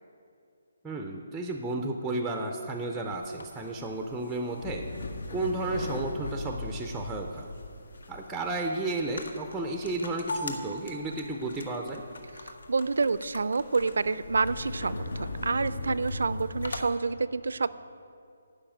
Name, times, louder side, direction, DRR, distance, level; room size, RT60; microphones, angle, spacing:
voice 1, 0.8-4.9 5.3-7.5 8.1-12.0, right 2 dB, 5° right, 3 dB, 0.4 m, -33 dB
sound 1, 3.1-16.9, left 2 dB, 85° left, 1.2 m, -39 dB
voice 2, 12.4-17.7, right 4 dB, 75° right, 16 dB, 0.4 m, -28 dB
12.0 x 5.4 x 8.6 m, 2.4 s
hypercardioid pair, 175°, 0 cm